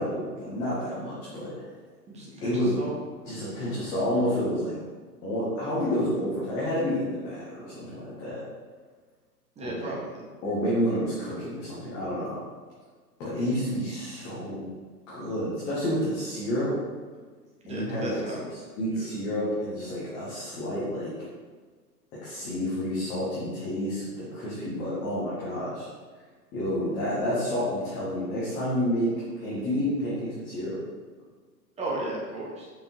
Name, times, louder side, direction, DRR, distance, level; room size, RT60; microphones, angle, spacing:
voice 1, 0.0-1.5 2.4-2.7 3.2-4.8 5.2-8.4 9.6-9.9 10.4-12.4 13.2-14.7 15.1-16.7 17.7-18.2 18.8-21.1 22.2-25.9 26.5-29.1 29.4-30.7, equal, 10° left, -9 dB, 0.4 m, -29 dB
voice 2, 2.1-3.0 3.5-3.7 9.6-10.3 13.3-13.5 17.7-18.5 18.9-19.1 31.8-32.7, right 1 dB, 15° right, -3 dB, 1.1 m, -35 dB
6.7 x 5.6 x 2.7 m, 1.5 s
figure-of-eight pair, 115°, 50 cm